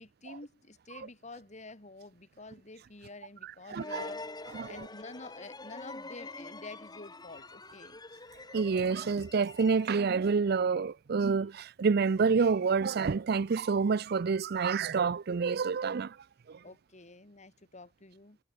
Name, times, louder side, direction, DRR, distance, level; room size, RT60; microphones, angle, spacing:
voice 1, 0.0-4.2 4.7-8.0 16.6-18.4, left 2 dB, 35° left, 2.3 m, -49 dB
sound 1, 3.7-10.2, left 2 dB, 20° left, 2.8 m, -45 dB
voice 2, 3.7-4.1 4.5-4.8 8.5-16.2 16.5-16.6, right 5 dB, 55° right, 0.5 m, -28 dB
head